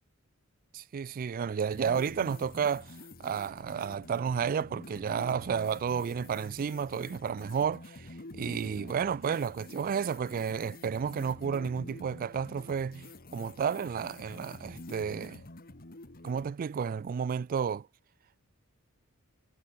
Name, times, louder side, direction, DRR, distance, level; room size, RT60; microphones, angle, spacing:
voice 1, 0.7-8.1 8.3-15.4 16.2-17.9, right 7 dB, 40° right, 0.3 m, -32 dB
sound 1, 1.7-16.5, left 2 dB, 45° left, 1.9 m, -48 dB
head